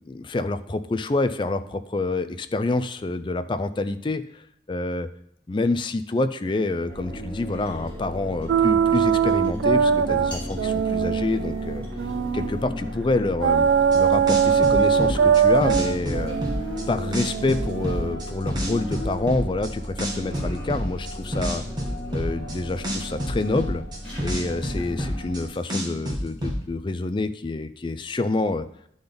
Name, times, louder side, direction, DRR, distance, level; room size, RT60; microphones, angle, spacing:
voice 1, 0.0-5.1 5.5-11.8 12.3-16.4 16.9-21.6 22.1-23.8 24.2-28.7, left 2 dB, 30° left, 12 dB, 0.4 m, -27 dB
sound 1, 6.9-25.5, equal, 5° left, 3.2 m, -35 dB
sound 2, 8.5-12.6 13.4-18.2, right 7 dB, 90° right, 0.3 m, -21 dB
sound 3, 13.9-14.0 14.3-16.8 17.1-19.7 20.0-22.5 22.8-25.4 25.7-26.6, equal, 25° right, 1.6 m, -28 dB
10.5 x 4.0 x 5.1 m, 0.70 s
head